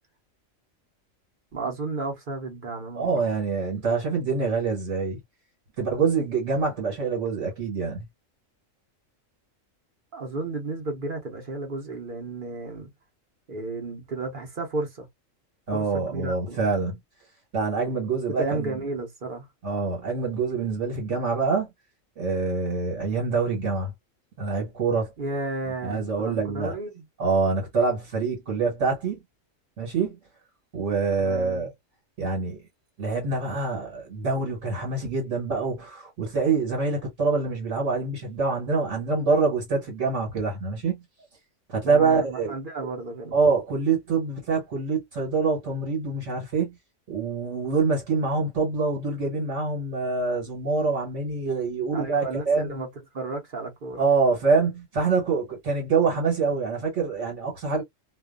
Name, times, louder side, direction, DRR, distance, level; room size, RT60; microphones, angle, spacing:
voice 1, 1.5-3.1 10.1-12.9 13.5-15.1 15.7-16.7 18.3-19.5 25.2-27.0 31.2-31.7 41.9-43.3 51.9-52.9 53.1-54.1, right 3 dB, 45° right, 1.0 m, -33 dB
voice 2, 2.9-5.2 5.8-8.0 15.7-17.0 17.5-18.7 19.6-21.7 22.2-23.9 24.4-25.1 25.8-26.7 27.2-29.2 29.8-30.2 30.7-31.7 32.2-32.6 33.0-41.0 41.7-42.5 43.3-46.7 47.1-52.8 54.0-57.8, right 4 dB, 65° right, 1.5 m, -25 dB
2.6 x 2.3 x 2.3 m
omnidirectional pair, 1.4 m